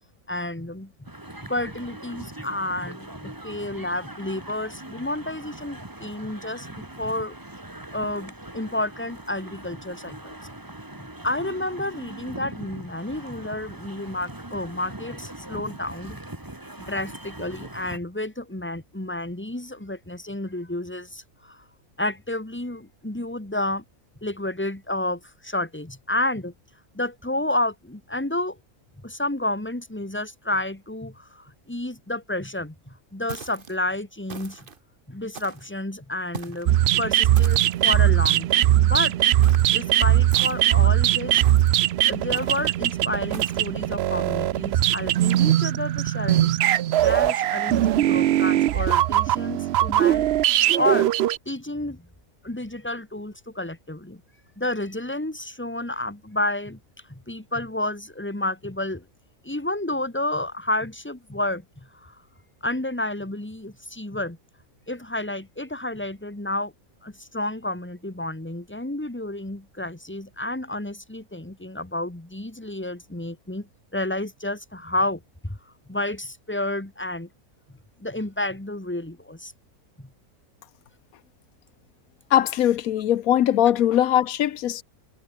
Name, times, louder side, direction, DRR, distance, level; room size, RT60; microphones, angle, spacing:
voice 1, 0.3-1.1 1.4-7.4 7.9-10.4 11.2-16.2 16.8-21.6 22.0-23.8 24.2-26.5 26.9-28.6 29.0-34.6 35.1-39.1 39.4-41.4 42.1-46.5 47.0-50.3 50.7-51.1 51.5-52.1 52.4-54.2 54.6-56.8 57.1-59.0 59.4-62.2 62.6-64.4 64.9-66.7 67.0-75.6 75.9-77.3 78.0-79.5 80.0-80.1, left 1 dB, 10° left, 1.9 m, -30 dB
sound 1, 1.1-18.0, right 1 dB, 15° right, 2.1 m, -41 dB
sound 2, 33.3-33.8 34.3-34.8 35.3-35.8 36.3-36.7 37.4-37.9 39.4-39.8 40.3-40.8 41.4-41.8 42.3-42.7 43.3-43.7, right 5 dB, 40° right, 1.4 m, -40 dB
sound 3, 36.7-51.4, right 13 dB, 70° right, 0.6 m, -20 dB
voice 2, 82.3-84.8, left 11 dB, 75° left, 1.2 m, -20 dB
omnidirectional pair, 1.5 m